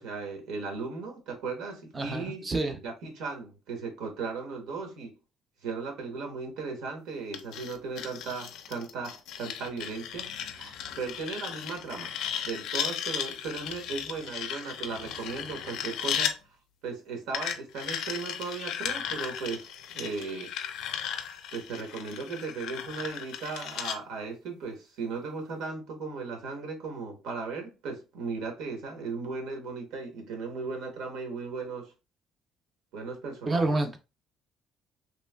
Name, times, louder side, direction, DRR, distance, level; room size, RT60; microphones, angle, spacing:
voice 1, 0.0-5.1 5.6-12.1 12.4-16.3 16.8-20.5 21.5-31.9 32.9-33.8, right 4 dB, 85° right, 1.0 m, -37 dB
voice 2, 1.9-2.8 33.5-34.0, right 2 dB, 15° right, 0.4 m, -28 dB
sound 1, 7.3-16.4 17.3-24.0, left 9 dB, 65° left, 0.4 m, -35 dB
3.0 x 2.5 x 2.2 m
cardioid pair, 180°, 0 cm